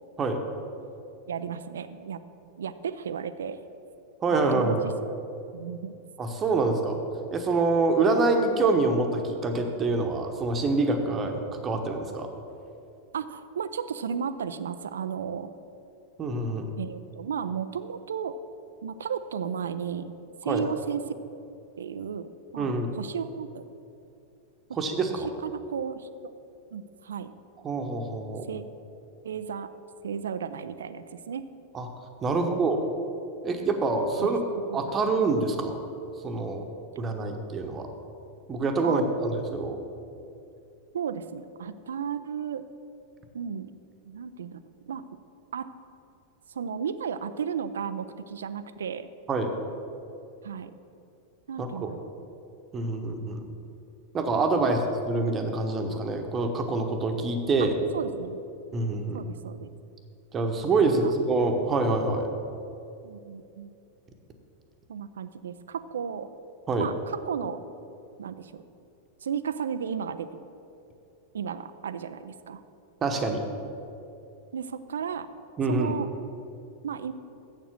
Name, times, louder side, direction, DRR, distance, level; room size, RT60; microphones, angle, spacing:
voice 1, 1.3-2.2 2.6-3.6 4.3-4.9 5.5-5.9 13.1-15.5 16.8-18.4 18.8-20.1 20.4-21.0 21.8-23.7 24.7-24.8 25.2-26.1 26.7-27.3 28.5-28.7 29.2-29.7 30.0-31.4 32.3-32.6 34.2-34.9 38.8-39.0 40.9-42.6 43.3-43.7 44.0-44.6 44.9-45.0 45.5-45.7 46.5-49.1 50.4-50.7 51.5-52.1 54.6-54.8 57.9-58.4 59.1-59.7 60.8-60.9 63.0-63.7 64.9-66.3 66.8-67.6 68.2-68.6 69.2-70.3 71.3-72.6 74.5-75.3 75.7-76.1 76.8-77.1, right 7 dB, 65° right, 12 dB, 0.4 m, -34 dB
voice 2, 4.2-4.8 6.2-7.0 7.3-12.3 16.2-16.7 20.5-20.6 22.6-22.9 24.7-25.3 27.6-28.4 31.7-31.9 32.2-32.8 33.4-34.4 34.7-35.8 36.2-36.6 37.0-37.9 38.5-39.8 49.3-49.5 51.6-51.7 52.7-53.4 54.1-54.8 55.1-57.8 58.7-59.2 60.3-62.3 66.7-66.9 73.0-73.4 75.6-75.9, right 3 dB, 25° right, 5 dB, 1.0 m, -26 dB
7.7 x 7.3 x 6.3 m, 2.7 s
figure-of-eight pair, 90°, 0 cm